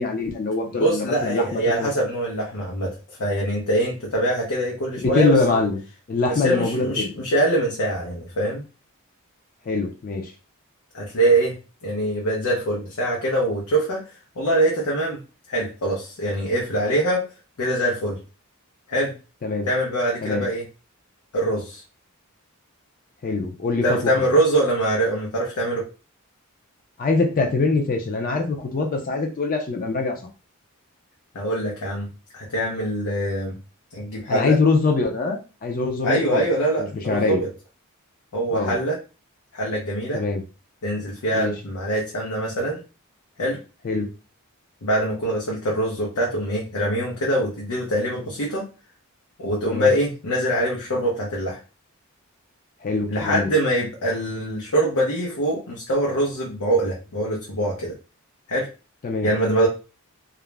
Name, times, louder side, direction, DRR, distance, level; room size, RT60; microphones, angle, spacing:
voice 1, 0.0-1.9 5.0-5.8 6.1-7.1 9.7-10.3 19.4-19.7 20.2-20.5 23.2-24.0 27.0-30.2 34.3-36.5 36.9-37.4 38.5-38.7 40.1-40.4 41.3-41.5 43.8-44.1 49.7-49.9 52.8-53.5 59.0-59.3, left 3 dB, 40° left, 4 dB, 0.4 m, -23 dB
voice 2, 0.8-5.6 6.2-8.6 10.9-14.1 14.4-15.2 15.5-17.3 17.6-18.2 18.9-19.1 19.7-20.7 21.3-21.8 23.8-25.9 31.3-32.1 32.3-33.6 33.9-34.6 36.0-37.5 38.3-39.0 39.5-40.2 40.8-42.8 43.4-43.6 44.8-48.7 49.4-51.6 53.1-57.9 58.5-58.7 59.2-59.7, right 1 dB, 85° left, -3 dB, 0.7 m, -23 dB
2.4 x 2.0 x 3.1 m, 0.33 s
head